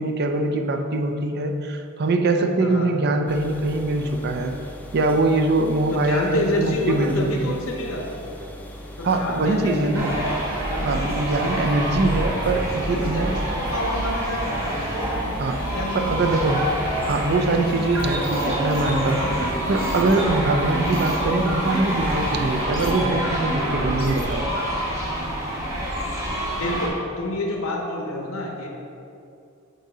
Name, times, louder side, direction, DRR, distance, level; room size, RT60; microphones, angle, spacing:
voice 1, 0.0-4.5 4.9-7.6 9.0-10.1 10.9-13.3 15.4-16.6 17.0-24.5, right 2 dB, 50° right, 5 dB, 0.5 m, -23 dB
voice 2, 2.6-2.9 5.9-8.0 9.0-10.2 10.7-11.3 12.6-14.6 15.7-16.5 26.5-28.7, left 1 dB, 80° left, 1 dB, 0.7 m, -28 dB
sound 1, 3.3-22.7, equal, 10° left, 0.4 m, -40 dB
sound 2, 9.9-26.9, equal, 15° right, 1.1 m, -27 dB
sound 3, 17.8-24.6, right 1 dB, 65° right, 0.9 m, -30 dB
7.7 x 2.8 x 4.8 m, 2.6 s
head